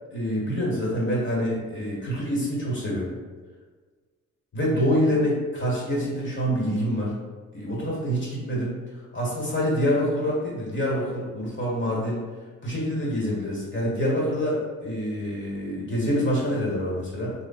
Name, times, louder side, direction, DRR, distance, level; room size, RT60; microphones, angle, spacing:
voice 1, 0.1-3.1 4.5-7.1 7.5-8.8 9.1-12.2 12.6-17.3, equal, 40° left, -5 dB, 1.4 m, -26 dB
3.1 x 2.2 x 4.1 m, 1.4 s
cardioid pair, 90°, 30 cm